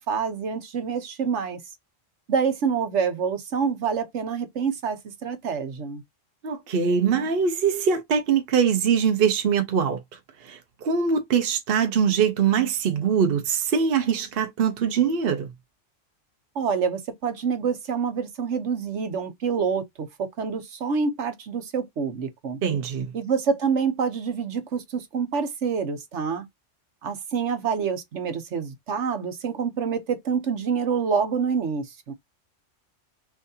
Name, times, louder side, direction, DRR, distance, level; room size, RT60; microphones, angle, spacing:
voice 1, 0.0-1.6 2.3-6.0 16.5-22.6 23.1-26.5 27.0-32.1, right 6 dB, 70° right, 1.2 m, -27 dB
voice 2, 6.4-10.0 10.4-15.5 22.6-23.1, right 7 dB, 55° right, 1.0 m, -23 dB
6.1 x 2.7 x 2.7 m
omnidirectional pair, 1.3 m